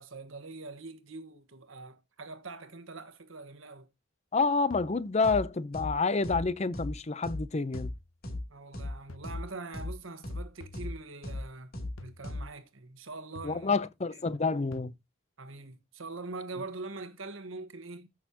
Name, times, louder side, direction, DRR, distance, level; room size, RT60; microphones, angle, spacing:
voice 1, 0.0-3.9 8.5-11.7 12.0-13.8 14.1-14.4 15.4-18.1, right 3 dB, 85° right, 1.4 m, -43 dB
voice 2, 4.3-7.9 13.4-14.9, left 4 dB, 35° left, 0.6 m, -28 dB
sound 1, 4.7-5.1 6.3-6.7 7.7-8.1 9.1-9.5 10.6-11.0 12.0-12.4 13.4-13.8 14.7-14.9, left 3 dB, 85° left, 0.8 m, -49 dB
sound 2, 5.2-5.4 5.7-5.9 6.2-6.4 6.7-6.9 7.2-7.4 7.7-7.9 8.2-8.4 8.7-8.9 9.2-9.4 9.7-9.9 10.2-10.4 10.7-10.9 11.2-11.4 11.7-11.9 12.2-12.4, left 2 dB, 50° left, 3.0 m, -36 dB
14.5 x 6.4 x 2.8 m
head